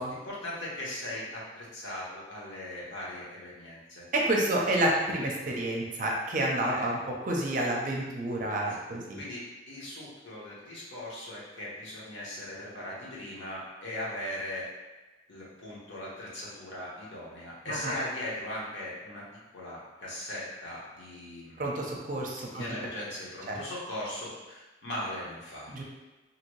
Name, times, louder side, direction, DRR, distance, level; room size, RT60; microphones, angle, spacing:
voice 1, 0.1-4.0 6.7-6.9 8.6-8.8 9.2-14.7 15.3-19.2 19.5-21.6 22.5-25.7, left 1 dB, 85° left, -6 dB, 1.0 m, -39 dB
voice 2, 4.1-7.0 7.2-9.2 17.7-17.9 21.6-22.6 23.5-23.6 25.7-25.8, right 1 dB, 45° right, -2 dB, 0.5 m, -29 dB
2.8 x 2.6 x 3.0 m, 1.1 s
head